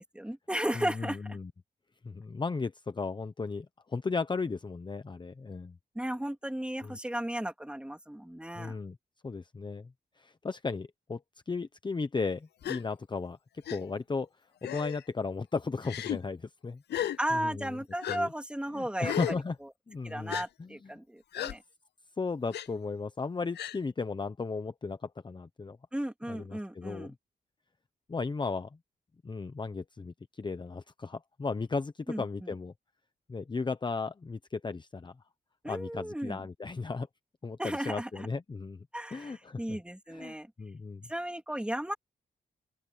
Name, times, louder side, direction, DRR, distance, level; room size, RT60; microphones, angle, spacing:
voice 1, 0.0-1.4 5.9-8.8 17.2-19.4 20.0-21.6 25.9-27.1 32.1-32.5 35.6-36.4 37.6-38.3 38.9-40.5 41.1-41.9, right 1 dB, 5° right, 3.3 m, -35 dB
voice 2, 0.7-1.5 2.0-5.8 6.8-7.0 8.6-8.9 9.2-9.9 10.2-14.3 14.6-16.8 17.3-17.8 18.1-18.3 18.7-19.6 19.9-20.9 22.2-25.8 26.3-27.1 28.1-28.7 29.2-32.7 33.3-35.1 35.7-37.1 37.4-38.9 39.1-39.8 40.1-41.1, left 4 dB, 25° left, 0.9 m, -35 dB
Gasp, 12.6-12.8 13.7-13.8 14.6-15.0 15.8-16.2 16.9-17.2 18.0-18.2 19.0-19.4 20.3-20.5 21.3-21.5 22.5-22.7 23.5-23.8, left 11 dB, 85° left, 0.6 m, -34 dB
open air
wide cardioid pair, 105°, 17 cm